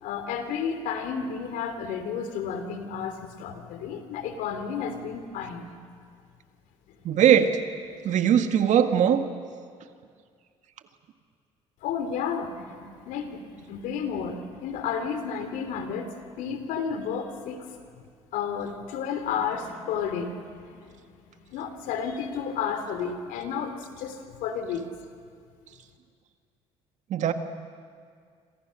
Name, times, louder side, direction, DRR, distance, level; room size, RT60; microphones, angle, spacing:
voice 1, 0.0-5.8 11.8-16.1 16.4-17.7 18.3-20.9 21.5-24.8, left 6 dB, 75° left, 8 dB, 2.9 m, -32 dB
voice 2, 7.0-7.6 8.0-9.2 27.1-27.3, right 9 dB, 60° right, 7 dB, 2.0 m, -20 dB
27.0 x 27.0 x 6.4 m, 2.1 s
supercardioid pair, 70°, 14 cm